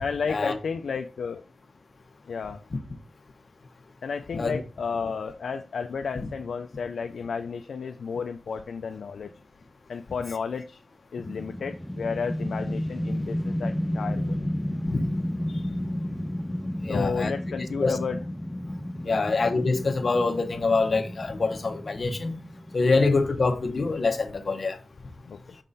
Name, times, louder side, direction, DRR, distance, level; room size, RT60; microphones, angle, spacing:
voice 1, 0.0-1.4 2.3-2.6 4.0-9.3 9.9-10.8 11.1-14.4 16.9-18.2 19.0-19.3 22.9-23.1 25.3-25.6, left 5 dB, 80° left, 0.4 m, -32 dB
sound 1, 11.2-23.4, left 1 dB, 5° left, 0.4 m, -32 dB
voice 2, 16.8-17.3 17.8-17.9 19.0-22.4 22.7-24.8, left 3 dB, 50° left, 0.9 m, -25 dB
6.3 x 3.7 x 4.0 m
wide cardioid pair, 100°, 0 cm